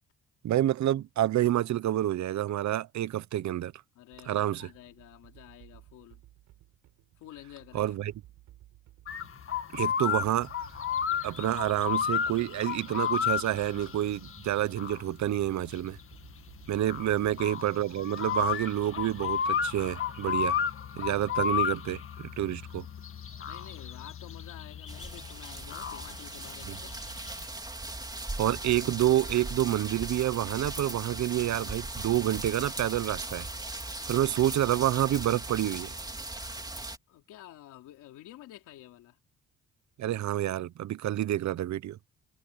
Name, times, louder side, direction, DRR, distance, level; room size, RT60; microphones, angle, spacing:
voice 1, 0.4-3.7 4.3-4.7 7.7-8.1 9.7-10.5 11.2-16.0 16.7-20.6 21.0-22.9 26.7-26.8 28.4-33.5 34.1-35.9 40.0-42.0, right 13 dB, 65° right, 1.0 m, -28 dB
voice 2, 4.0-6.2 7.2-7.9 17.0-17.3 23.5-26.9 37.1-39.2, left 14 dB, 90° left, 3.4 m, -50 dB
sound 1, 4.1-20.0, right 14 dB, 90° right, 6.7 m, -57 dB
sound 2, 9.1-27.5, left 7 dB, 45° left, 1.8 m, -33 dB
sound 3, 24.9-37.0, right 2 dB, 15° right, 3.3 m, -39 dB
cardioid pair, 90°, 30 cm